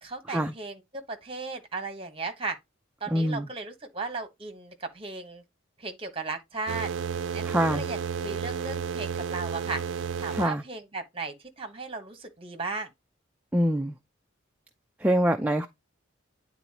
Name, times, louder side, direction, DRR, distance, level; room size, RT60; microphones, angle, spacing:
voice 1, 0.0-2.6 3.0-5.4 5.8-6.9 7.3-9.8 10.2-12.9, right 3 dB, 25° right, 1.3 m, -36 dB
voice 2, 3.1-3.5 7.4-7.8 10.3-10.6 13.5-14.0 15.0-15.7, equal, 5° right, 0.4 m, -25 dB
sound 1, 6.7-10.5, right 6 dB, 65° right, 0.5 m, -32 dB
9.4 x 4.1 x 2.9 m
head